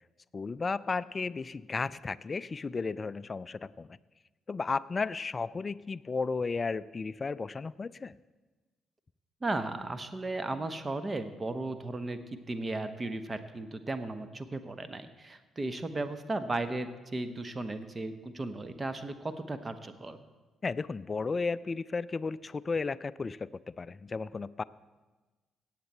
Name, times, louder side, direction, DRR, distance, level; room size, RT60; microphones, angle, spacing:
voice 1, 0.3-4.0 4.5-8.1 20.6-24.6, left 4 dB, 35° left, 18 dB, 0.3 m, -34 dB
voice 2, 9.4-12.2 12.5-20.2, right 2 dB, 30° right, 11 dB, 1.0 m, -35 dB
17.0 x 7.6 x 4.4 m, 1.2 s
hypercardioid pair, 40°, 0 cm